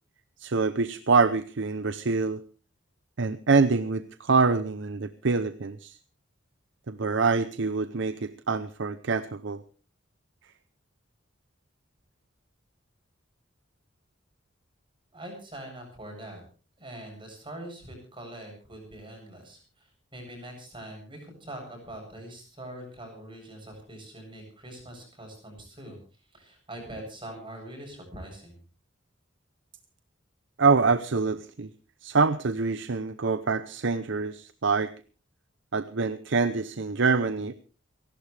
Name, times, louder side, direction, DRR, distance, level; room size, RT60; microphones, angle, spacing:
voice 1, 0.4-2.4 3.2-6.0 6.9-9.6 30.6-31.7 32.0-34.9 35.7-37.5, right 4 dB, 65° right, 13 dB, 0.7 m, -25 dB
voice 2, 15.1-16.4 16.8-26.0 26.3-28.6, right 1 dB, 25° right, 2 dB, 7.9 m, -43 dB
29.5 x 12.0 x 3.3 m, 0.37 s
head